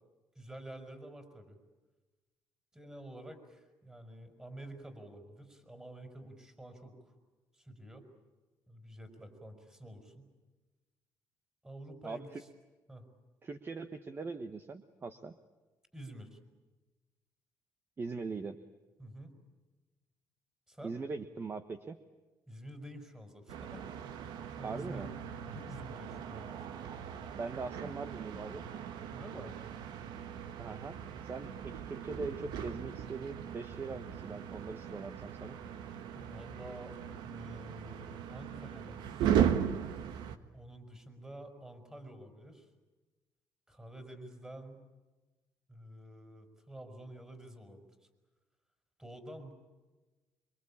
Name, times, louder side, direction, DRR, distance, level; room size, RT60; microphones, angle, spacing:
voice 1, 0.4-1.6 2.7-7.1 7.5-8.1 8.7-10.3 11.6-12.5 12.9-13.0 15.9-16.4 19.0-19.3 20.7-21.0 22.5-23.8 24.5-25.1 25.4-26.5 29.1-29.6 36.1-39.5 40.5-42.7 43.7-44.8 45.7-47.9 49.0-49.5, right 1 dB, 10° right, 7 dB, 5.1 m, -49 dB
voice 2, 13.4-15.3 18.0-18.6 20.8-22.0 24.6-25.1 27.3-28.6 30.6-31.0 31.2-35.6, right 4 dB, 30° right, 9 dB, 1.2 m, -41 dB
sound 1, 23.5-40.4, right 9 dB, 85° right, 1.5 m, -38 dB
26.0 x 24.0 x 8.7 m, 1.2 s
cardioid pair, 115°, 7 cm